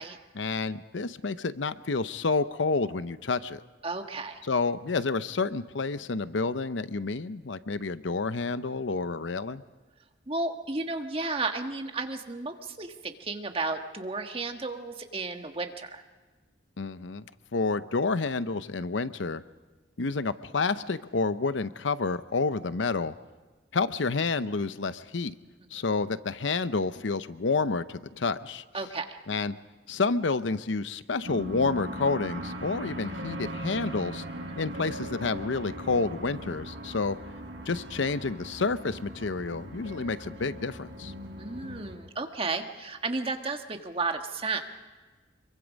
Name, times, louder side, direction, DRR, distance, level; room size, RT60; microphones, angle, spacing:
voice 1, 0.3-3.6 4.4-9.6 16.8-17.2 17.5-19.4 20.0-23.1 23.7-25.4 25.7-28.6 29.3-29.6 29.9-34.2 34.6-37.2 37.7-41.1, left 4 dB, 90° left, 13 dB, 0.7 m, -29 dB
voice 2, 3.8-4.4 10.3-16.0 28.7-29.2 34.5-34.6 41.4-44.6, right 3 dB, 30° right, 5 dB, 1.4 m, -33 dB
sound 1, 31.2-42.0, equal, 80° right, 5.9 m, -39 dB
25.5 x 23.5 x 5.3 m, 1.3 s
head